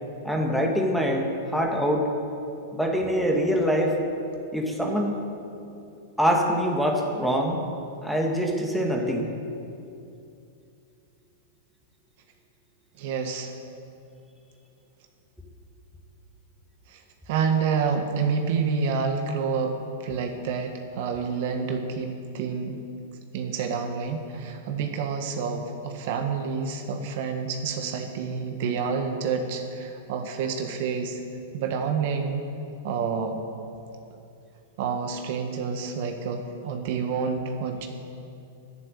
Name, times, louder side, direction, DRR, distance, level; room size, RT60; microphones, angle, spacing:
voice 1, 0.2-2.1 2.7-4.0 4.5-5.1 6.2-7.6 8.0-9.3, equal, ahead, 0 dB, 2.0 m, -24 dB
voice 2, 13.0-13.5 16.9-17.0 17.3-22.8 23.3-31.2 31.5-32.4 32.8-33.4 34.8-37.9, right 5 dB, 60° right, 4 dB, 1.5 m, -28 dB
10.5 x 10.5 x 9.3 m, 2.7 s
hypercardioid pair, 115°, 0 cm